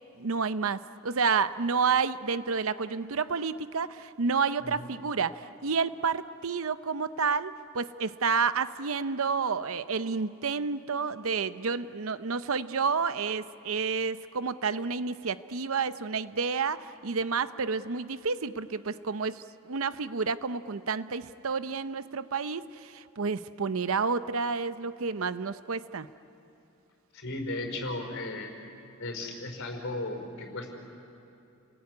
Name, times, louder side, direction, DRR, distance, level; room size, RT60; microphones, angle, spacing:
voice 1, 0.2-26.1, right 5 dB, 70° right, 13 dB, 0.7 m, -30 dB
voice 2, 27.1-28.5 29.0-30.7, left 2 dB, 65° left, 4 dB, 5.1 m, -35 dB
29.5 x 20.5 x 9.6 m, 2.8 s
head